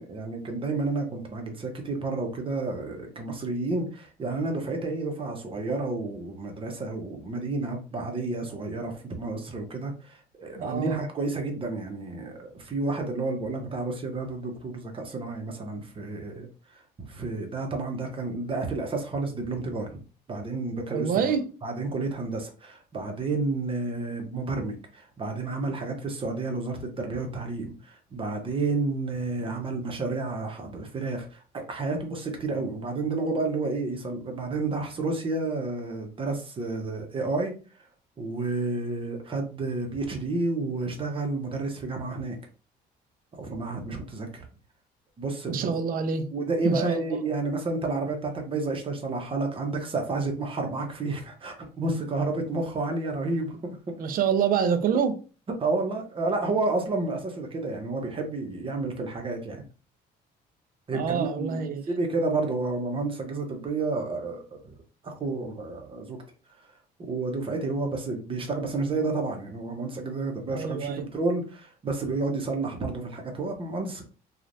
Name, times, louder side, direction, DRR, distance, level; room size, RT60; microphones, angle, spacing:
voice 1, 0.0-16.5 16.7-20.0 20.3-21.3 21.6-37.5 38.2-42.4 43.3-44.5 45.2-45.8 46.3-54.0 55.6-59.6 60.9-64.7 65.0-66.2 67.0-74.0, right 3 dB, 30° right, 0.9 m, -30 dB
voice 2, 10.6-11.0 20.9-21.5 45.5-46.3 46.6-47.0 54.0-55.2 60.9-61.8 70.5-71.1, right 7 dB, 55° right, 0.5 m, -26 dB
3.1 x 2.4 x 2.6 m
cardioid pair, 110°, 17 cm